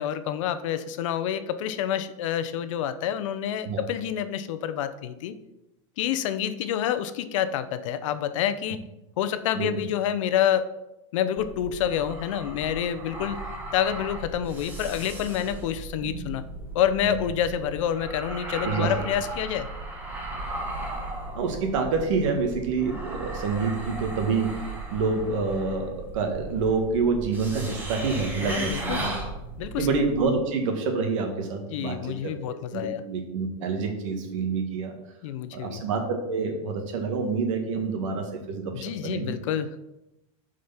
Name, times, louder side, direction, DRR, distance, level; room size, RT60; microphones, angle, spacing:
voice 1, 0.0-5.4 6.0-8.8 9.2-10.7 11.1-13.4 13.7-16.4 16.7-19.7 28.4-29.1 29.6-29.9 31.7-33.0 35.2-35.8 38.7-39.8, left 10 dB, 70° left, 12 dB, 0.7 m, -28 dB
sound 1, 11.4-30.2, right 2 dB, 10° right, 1.5 m, -36 dB
voice 2, 21.3-24.5 24.9-29.1 29.8-32.3 32.7-34.9 35.5-39.3, right 4 dB, 70° right, 4 dB, 1.9 m, -27 dB
7.8 x 5.1 x 5.7 m, 0.92 s
supercardioid pair, 165°, 17 cm